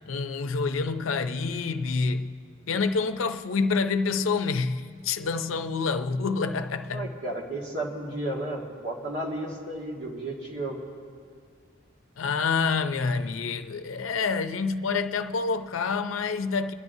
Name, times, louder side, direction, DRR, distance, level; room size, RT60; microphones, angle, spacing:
voice 1, 0.1-2.4 2.7-7.1 12.2-16.7, left 4 dB, 90° left, 0.5 m, -27 dB
voice 2, 6.9-10.8, right 1 dB, 60° right, 2.0 m, -33 dB
26.5 x 11.0 x 2.7 m
head